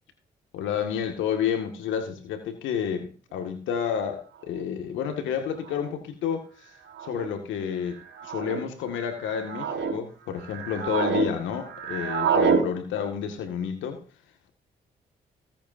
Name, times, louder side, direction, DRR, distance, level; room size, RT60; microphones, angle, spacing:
voice 1, 0.5-6.5 7.0-14.0, left 8 dB, 85° left, 1.9 m, -30 dB
sound 1, 4.5-4.6 5.7-5.9 6.9-7.3 8.1-8.6 9.2-9.9 10.4-11.3 11.5-12.6, right 6 dB, 75° right, 4.3 m, -27 dB
19.0 x 8.6 x 2.7 m
supercardioid pair, 50°, 19 cm